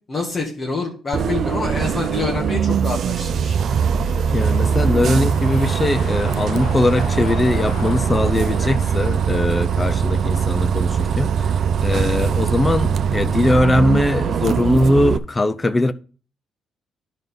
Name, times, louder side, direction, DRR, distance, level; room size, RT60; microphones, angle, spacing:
voice 1, 0.1-3.6, left 3 dB, 40° left, 2.0 m, -26 dB
Bus, 1.1-15.2, right 7 dB, 60° right, 0.6 m, -21 dB
sound 1, 3.2-11.6 12.0-12.1, left 3 dB, 80° left, 2.6 m, -37 dB
voice 2, 4.3-11.5 11.8-15.9, left 2 dB, 25° left, 0.6 m, -20 dB
10.5 x 5.4 x 4.0 m
cardioid pair, 90°, 0 cm